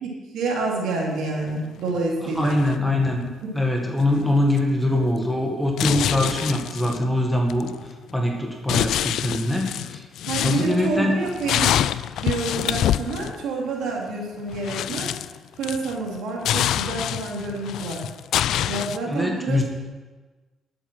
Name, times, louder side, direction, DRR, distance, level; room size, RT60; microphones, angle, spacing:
voice 1, 0.0-2.6 3.4-3.5 10.3-11.7 12.1-15.1 15.6-18.0 18.7-19.6, right 3 dB, 85° right, -1 dB, 3.0 m, -28 dB
sound 1, 1.5-1.6 1.9-2.0 2.4-3.1 4.1-4.2 4.6-5.0 5.8-7.1 7.5-8.3 8.7-13.4 14.1-14.2 14.4-16.2 16.4-19.0, left 11 dB, 80° left, 0.3 m, -26 dB
voice 2, 2.2-3.3 3.5-7.7 8.1-10.0 10.4-11.2 19.1-19.6, left 1 dB, 5° left, 1 dB, 1.7 m, -23 dB
12.5 x 7.8 x 6.2 m, 1.3 s
cardioid pair, 90°, 0 cm